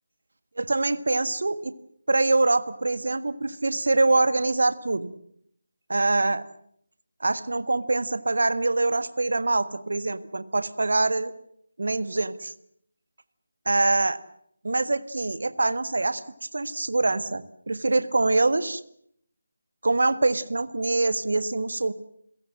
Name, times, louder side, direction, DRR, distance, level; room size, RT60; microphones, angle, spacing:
voice 1, 0.6-1.7 2.1-5.1 5.9-6.4 7.2-11.3 11.8-12.5 13.6-14.2 14.6-16.2 16.5-18.8 19.8-21.9, right 2 dB, 60° right, 13 dB, 1.5 m, -24 dB
29.0 x 17.0 x 7.6 m, 0.69 s
figure-of-eight pair, 155°, 0 cm